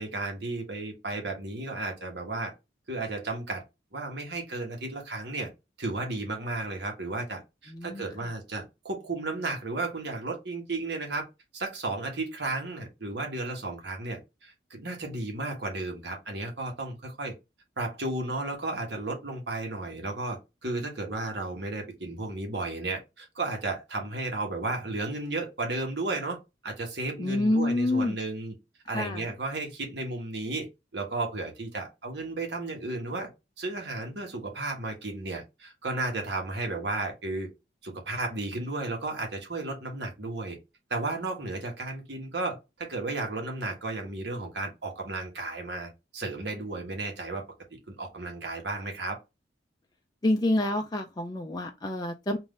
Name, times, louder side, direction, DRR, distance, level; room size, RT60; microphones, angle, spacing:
voice 1, 0.0-2.5 2.9-3.6 3.9-5.5 5.8-11.3 11.5-17.3 17.8-26.4 26.6-28.5 28.9-30.7 30.9-33.3 33.6-37.5 37.8-40.6 40.9-47.4 47.9-49.2, right 2 dB, 60° right, 1.2 m, -33 dB
voice 2, 7.7-8.3 27.2-28.2 28.9-29.2 50.2-52.4, left 1 dB, 20° left, 0.4 m, -27 dB
3.6 x 2.6 x 3.7 m
head